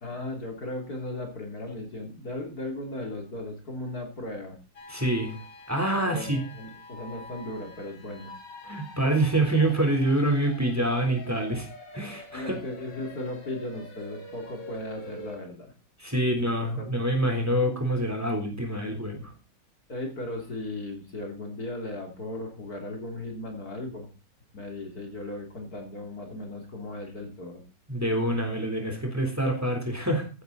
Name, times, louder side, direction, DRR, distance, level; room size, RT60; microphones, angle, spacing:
voice 1, 0.0-4.6 6.1-8.4 11.5-11.6 12.3-15.7 16.4-17.3 19.9-24.1 24.5-27.6, left 1 dB, 60° left, 2 dB, 3.5 m, -37 dB
sound 1, 4.8-15.4, left 2 dB, 80° left, 3.3 m, -46 dB
voice 2, 4.9-5.4 5.7-6.4 8.7-11.6 11.9-12.6 16.0-19.3 27.9-30.3, right 1 dB, 10° right, 3 dB, 3.6 m, -26 dB
15.0 x 11.0 x 4.1 m, 0.32 s
omnidirectional pair, 1.9 m